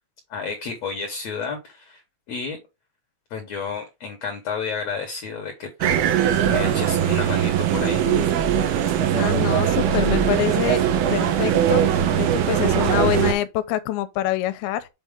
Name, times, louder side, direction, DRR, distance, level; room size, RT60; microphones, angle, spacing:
voice 1, 0.3-2.0 2.3-2.6 3.3-6.0 6.5-8.0, left 5 dB, 60° left, 1.8 m, -31 dB
sound 1, 5.8-13.3, right 9 dB, 80° right, 3.0 m, -20 dB
voice 2, 9.1-10.8 11.1-11.9 12.1-14.9, left 12 dB, 90° left, 2.6 m, -25 dB
6.9 x 4.7 x 3.6 m
omnidirectional pair, 4.4 m